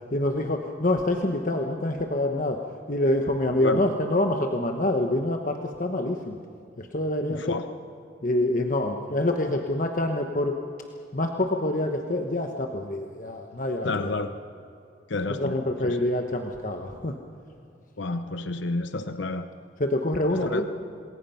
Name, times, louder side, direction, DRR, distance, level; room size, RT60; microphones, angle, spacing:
voice 1, 0.1-2.6 2.9-6.4 6.8-7.6 8.2-10.5 11.1-14.1 15.3-17.1 19.8-20.7, left 1 dB, 45° left, 3 dB, 1.2 m, -26 dB
voice 2, 7.3-7.6 13.8-14.3 15.1-15.5 15.8-16.0 18.0-19.5 20.3-20.6, left 2 dB, 80° left, 9 dB, 0.8 m, -29 dB
27.5 x 20.5 x 5.8 m, 2.5 s
head